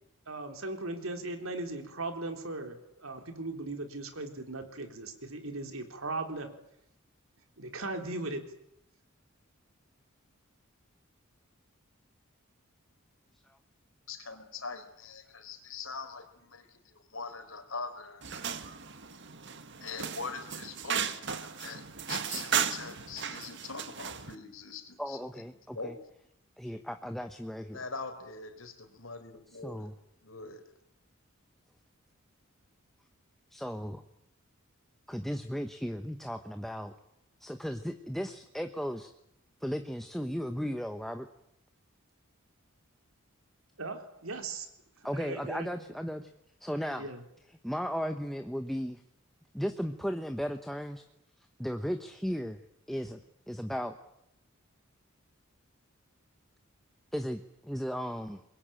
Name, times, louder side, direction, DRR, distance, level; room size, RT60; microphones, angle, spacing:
voice 1, 0.3-6.5 7.6-8.4 43.8-44.7 45.0-45.7 47.0-47.2, right 2 dB, 75° right, 6 dB, 3.9 m, -38 dB
voice 2, 14.1-18.2 19.8-25.2 25.4-26.0 27.7-29.9 30.2-30.6, left 4 dB, 70° left, 8 dB, 4.2 m, -43 dB
sound 1, 18.2-24.3, right 7 dB, 55° right, 1.7 m, -35 dB
voice 3, 25.0-25.9 26.6-27.8 29.6-29.9 33.5-34.0 35.1-36.9 37.4-39.1 39.6-41.3 45.0-46.3 46.6-47.1 47.6-49.0 49.5-51.0 51.6-52.6 52.9-53.2 53.5-54.0 57.1-58.4, equal, ahead, 7 dB, 1.0 m, -35 dB
24.5 x 22.0 x 9.0 m, 0.78 s
head